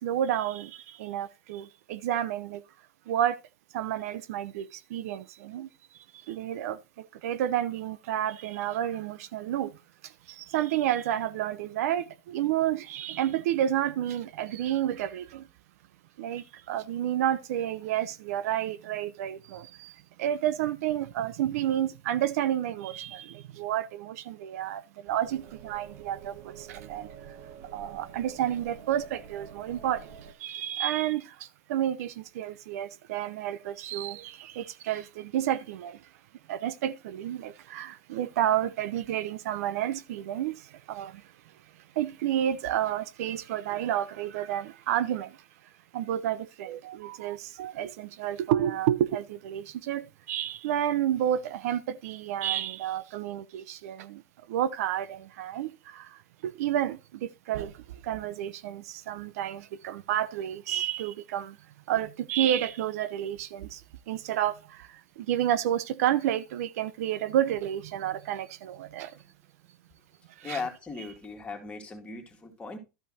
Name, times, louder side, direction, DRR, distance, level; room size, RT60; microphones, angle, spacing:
voice 1, 0.0-2.6 3.1-3.4 3.7-5.7 6.2-9.8 10.0-15.5 16.2-27.4 27.7-36.1 36.5-41.3 42.0-45.4 45.9-54.2 54.5-61.6 61.9-69.2 70.4-70.6, right 11 dB, 80° right, 0.7 m, -30 dB
sound 1, 25.2-30.3, right 8 dB, 50° right, 1.4 m, -47 dB
voice 2, 70.4-72.8, left 4 dB, 15° left, 2.2 m, -38 dB
12.5 x 5.6 x 4.1 m
supercardioid pair, 140°, 8 cm